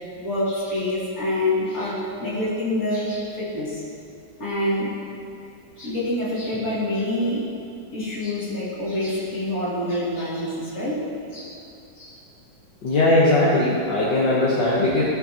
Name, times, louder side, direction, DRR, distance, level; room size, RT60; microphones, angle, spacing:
voice 1, 0.2-3.8 4.4-5.0 5.8-7.5 7.9-11.6 12.0-12.2, left 1 dB, 50° left, -9 dB, 3.1 m, -26 dB
voice 2, 12.8-15.0, left 2 dB, 75° left, -7 dB, 1.9 m, -19 dB
16.5 x 6.6 x 2.9 m, 2.5 s
omnidirectional pair, 2.0 m